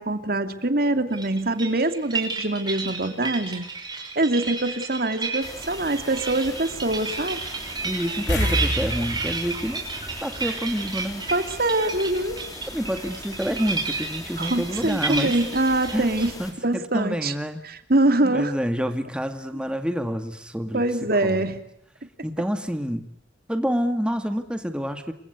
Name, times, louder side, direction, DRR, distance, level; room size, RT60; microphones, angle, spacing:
voice 1, 0.0-3.7 4.2-7.4 10.4-10.5 11.3-12.4 14.4-16.3 16.6-17.3 17.6-18.5 20.7-21.6, right 2 dB, 55° right, 9 dB, 2.6 m, -24 dB
sound 1, 1.1-16.3, right 4 dB, 25° right, 5.6 m, -32 dB
sound 2, 5.4-16.5, left 2 dB, 20° left, 5.3 m, -40 dB
voice 2, 7.8-9.8 10.2-11.3 12.7-15.3 15.9-16.1 16.4-17.6 18.2-21.5 22.2-23.1 23.5-25.1, equal, 5° right, 7 dB, 2.1 m, -28 dB
sound 3, 8.3-11.1 11.4-11.6 14.4-14.5 14.9-15.0, equal, 70° left, 6.8 m, -28 dB
28.5 x 24.5 x 8.2 m, 0.75 s
head